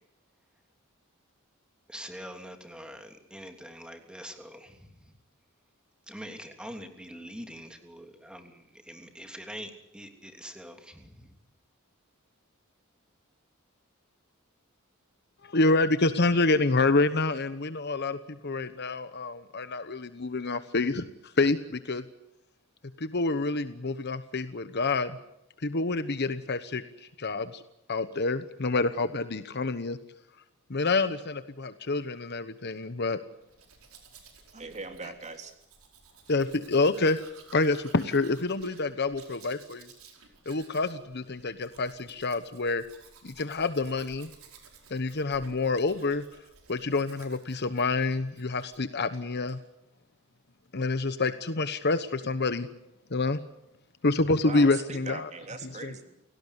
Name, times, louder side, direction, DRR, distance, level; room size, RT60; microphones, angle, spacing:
voice 1, 1.9-4.9 6.1-11.3, equal, 5° right, 5 dB, 3.0 m, -44 dB
voice 2, 15.4-22.0 23.0-25.2 25.6-27.6 27.9-30.0 30.7-33.2 36.3-37.2 37.5-39.9 40.5-42.8 43.2-44.3 44.9-46.2 46.7-49.6 50.7-52.7 53.1-53.4 54.0-55.3 55.8-55.9, left 3 dB, 50° left, 11 dB, 1.1 m, -27 dB
Domestic sounds home sounds, 33.4-48.9 49.1-49.6, right 5 dB, 75° right, 4.9 m, -55 dB
voice 3, 34.5-35.5 54.4-56.2, right 3 dB, 35° right, 6 dB, 3.4 m, -40 dB
29.5 x 18.0 x 8.2 m, 0.85 s
head